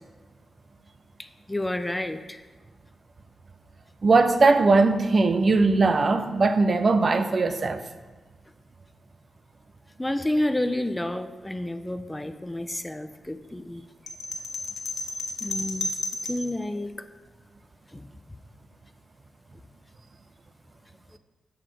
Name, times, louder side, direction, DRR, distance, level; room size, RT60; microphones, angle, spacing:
voice 1, 1.2-2.4 10.0-13.8 15.4-15.9 16.3-17.1 17.9-18.1, left 1 dB, 15° left, 0.4 m, -30 dB
voice 2, 4.0-7.8, right 3 dB, 45° right, 0.5 m, -20 dB
sound 1, 14.1-16.5, left 2 dB, 75° left, 0.9 m, -32 dB
8.0 x 6.1 x 4.6 m
cardioid pair, 90°, 0 cm